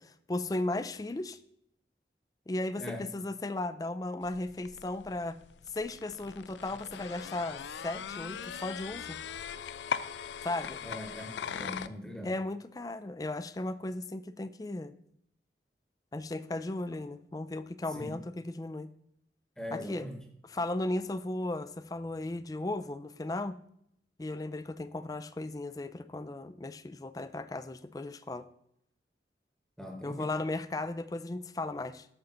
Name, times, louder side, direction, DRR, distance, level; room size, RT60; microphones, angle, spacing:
voice 1, 0.0-1.4 2.5-5.4 5.7-9.2 10.4-10.8 12.2-14.9 16.1-18.9 19.7-20.1 20.4-23.6 24.2-28.4 30.0-32.1, left 2 dB, 20° left, 12 dB, 0.4 m, -36 dB
voice 2, 2.8-3.1 10.8-11.3 11.5-12.4 17.9-18.2 19.6-20.2 29.8-30.4, left 1 dB, 5° left, 3 dB, 1.1 m, -41 dB
sound 1, 4.2-11.9, left 7 dB, 90° left, 0.4 m, -40 dB
8.8 x 7.0 x 3.9 m, 0.71 s
head